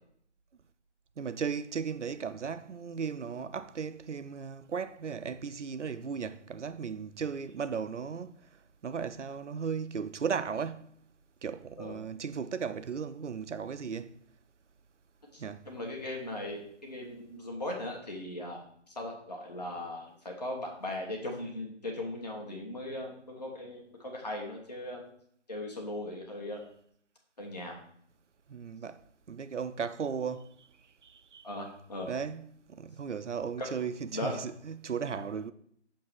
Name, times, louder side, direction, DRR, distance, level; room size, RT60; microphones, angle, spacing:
voice 1, 1.2-8.4 8.8-11.0 11.4-14.1 15.4-15.7 28.5-29.0 29.3-30.7 31.0-31.5 32.1-35.5, right 6 dB, 75° right, 0.5 m, -36 dB
voice 2, 15.3-18.6 19.0-25.0 25.5-26.6 27.4-27.7 31.4-32.1 33.6-33.7 34.1-34.4, left 1 dB, 35° left, 0.9 m, -38 dB
6.4 x 2.9 x 5.8 m
figure-of-eight pair, 165°, 36 cm